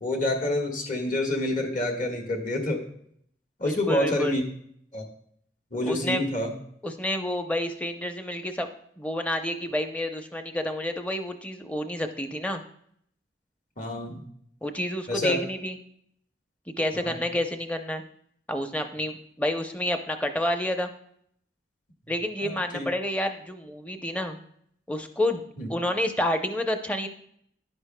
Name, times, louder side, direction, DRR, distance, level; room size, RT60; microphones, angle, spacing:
voice 1, 0.0-2.8 3.6-4.4 4.9-5.0 5.7-6.5 13.8-14.2 15.1-15.4 16.9-17.2 22.4-22.9 25.6-25.7, left 1 dB, 45° left, 1 dB, 1.5 m, -28 dB
voice 2, 3.6-4.4 5.9-6.2 6.8-8.7 9.0-12.6 14.6-15.8 16.8-18.0 18.5-20.9 22.1-24.4 24.9-25.4 25.7-27.1, left 1 dB, 10° left, 6 dB, 0.6 m, -29 dB
11.0 x 9.5 x 2.2 m, 0.67 s
head